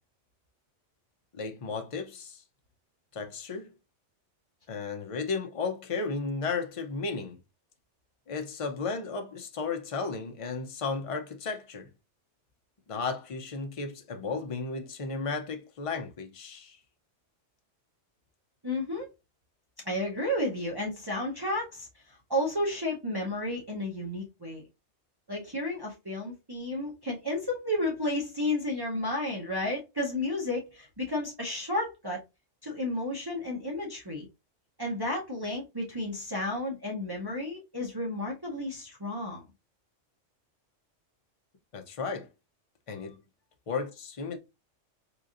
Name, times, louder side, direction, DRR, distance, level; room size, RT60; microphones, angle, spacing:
voice 1, 1.3-2.4 3.1-3.7 4.7-7.4 8.3-11.9 12.9-16.8 41.7-42.3 42.9-43.2 43.7-44.4, left 4 dB, 40° left, 0.5 m, -34 dB
voice 2, 18.6-19.1 19.8-24.6 25.3-32.2 32.6-34.3 34.8-39.4 42.9-43.1, left 1 dB, 25° right, 0.7 m, -32 dB
3.9 x 2.9 x 2.4 m
omnidirectional pair, 1.3 m